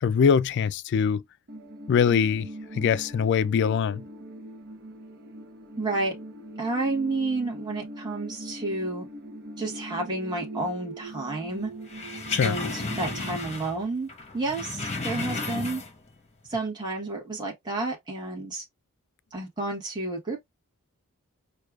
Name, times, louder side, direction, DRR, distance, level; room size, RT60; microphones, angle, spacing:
voice 1, 0.0-1.2 1.9-4.0 12.3-12.6, left 7 dB, 55° left, 0.3 m, -23 dB
sound 1, 1.5-13.4, right 1 dB, 50° right, 0.8 m, -41 dB
voice 2, 5.7-6.1 6.6-9.0 9.6-11.7 12.4-14.1 14.3-15.8 16.5-18.6 19.3-20.4, right 2 dB, 20° right, 1.3 m, -30 dB
sound 2, 11.9-13.8 14.1-16.1 16.5-16.6, left 3 dB, 30° left, 0.9 m, -33 dB
6.4 x 2.3 x 2.4 m
head